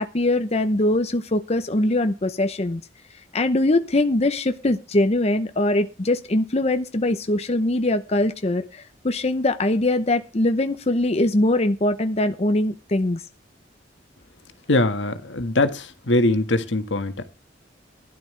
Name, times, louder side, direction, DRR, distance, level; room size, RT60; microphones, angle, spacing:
voice 1, 0.0-2.8 3.3-13.2, left 1 dB, 35° left, 0.8 m, -22 dB
voice 2, 14.7-17.3, left 2 dB, 85° left, 1.7 m, -22 dB
16.0 x 12.0 x 3.3 m
head